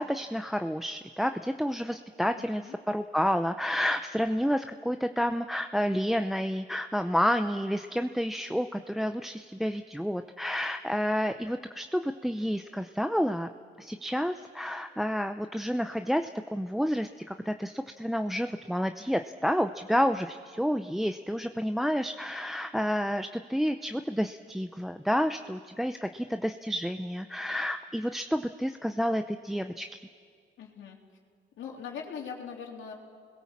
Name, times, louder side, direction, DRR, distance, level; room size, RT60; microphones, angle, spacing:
voice 1, 0.0-13.5 13.8-30.0, equal, ahead, 8 dB, 0.7 m, -30 dB
voice 2, 2.3-2.8 30.6-31.0 31.6-32.9, left 6 dB, 75° left, 0 dB, 3.5 m, -41 dB
29.5 x 21.0 x 7.4 m, 2.1 s
cardioid pair, 90°, 20 cm